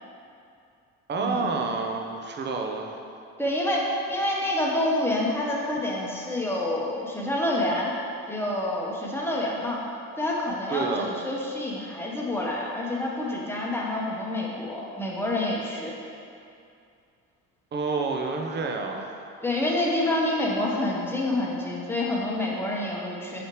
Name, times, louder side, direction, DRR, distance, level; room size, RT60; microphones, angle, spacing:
voice 1, 1.1-3.0 10.7-11.1 17.7-19.2, right 4 dB, 35° right, 3 dB, 0.7 m, -29 dB
voice 2, 3.4-3.8 4.1-7.9 8.3-9.8 10.2-15.9 19.4-23.4, left 1 dB, 5° left, -3 dB, 1.0 m, -27 dB
6.2 x 5.1 x 3.1 m, 2.5 s
supercardioid pair, 90°, 31 cm